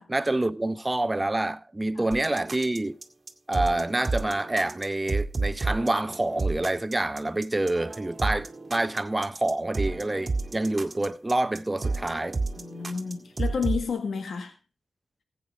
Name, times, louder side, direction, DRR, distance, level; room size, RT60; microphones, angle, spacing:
voice 1, 0.1-3.0 3.5-12.4, right 2 dB, 25° right, 0.8 m, -27 dB
sound 1, 2.1-13.9, right 3 dB, 45° right, 1.8 m, -31 dB
voice 2, 12.6-14.5, left 6 dB, 80° left, 1.8 m, -31 dB
15.0 x 8.4 x 4.6 m
cardioid pair, 55°, 0 cm